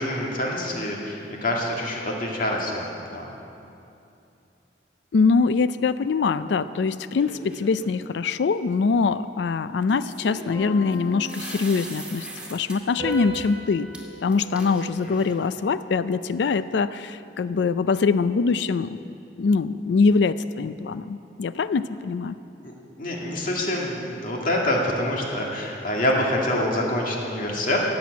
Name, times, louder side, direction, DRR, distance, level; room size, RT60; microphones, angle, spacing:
voice 1, 0.0-3.3 15.1-15.2 22.6-22.7 23.0-27.8, left 1 dB, 50° left, -2 dB, 2.3 m, -26 dB
voice 2, 5.1-13.9 14.2-22.3, left 4 dB, 70° left, 14 dB, 0.4 m, -23 dB
sound 1, 7.2-7.9 9.9-12.8 13.1-13.4 13.9-14.0 14.3-15.5, right 1 dB, 5° right, 2.4 m, -40 dB
sound 2, 10.5-12.3 13.0-15.6, right 1 dB, 25° left, 3.1 m, -38 dB
17.5 x 7.7 x 8.5 m, 2.7 s
head